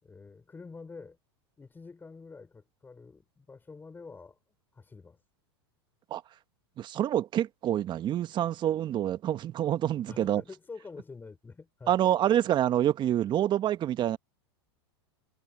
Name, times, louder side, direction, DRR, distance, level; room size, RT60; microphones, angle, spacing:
voice 1, 0.0-1.2 1.6-4.4 4.7-5.2 10.1-12.0, left 4 dB, 15° left, 5.3 m, -47 dB
voice 2, 6.8-10.4 11.9-14.2, right 11 dB, 35° right, 1.5 m, -27 dB
hypercardioid pair, 105°, 14 cm